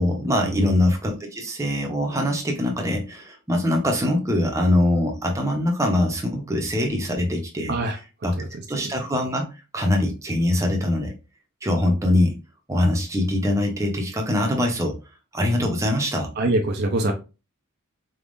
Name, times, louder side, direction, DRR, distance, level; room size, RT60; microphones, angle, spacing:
voice 1, 0.0-8.3 8.7-9.5 9.7-11.1 11.6-12.3 12.7-15.0 15.3-16.3, left 1 dB, 15° right, 1 dB, 0.8 m, -23 dB
voice 2, 16.4-17.1, right 2 dB, 45° right, 3 dB, 0.5 m, -23 dB
4.0 x 3.5 x 2.5 m, 0.30 s
head